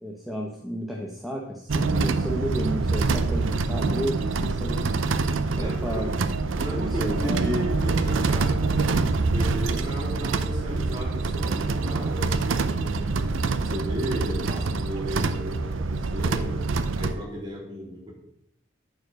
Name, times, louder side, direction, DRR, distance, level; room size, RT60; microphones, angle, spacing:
voice 1, 0.0-4.8 5.6-6.1 6.7-7.6, equal, ahead, -1 dB, 0.8 m, -32 dB
sound 1, 1.7-17.1, right 3 dB, 75° right, 0.6 m, -25 dB
voice 2, 5.6-6.2 6.5-18.1, equal, 25° right, -5 dB, 3.5 m, -35 dB
9.2 x 4.8 x 6.4 m, 0.76 s
head